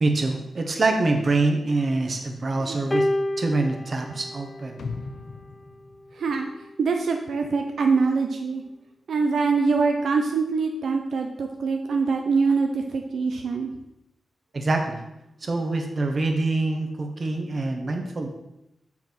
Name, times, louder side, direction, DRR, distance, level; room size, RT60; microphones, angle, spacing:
voice 1, 0.0-3.1 3.4-4.9 14.5-15.0 15.4-18.3, right 2 dB, 35° right, 4 dB, 1.1 m, -25 dB
sound 1, 2.9-5.4 6.4-6.6, left 1 dB, 15° left, 0.4 m, -29 dB
sound 2, 4.8-6.9 7.3-7.4, left 4 dB, 65° left, 0.8 m, -38 dB
voice 2, 6.2-6.5 6.8-8.6 9.1-13.7, right 4 dB, 70° right, 3 dB, 0.6 m, -24 dB
6.9 x 5.9 x 6.0 m, 0.89 s
wide cardioid pair, 160°, 0 cm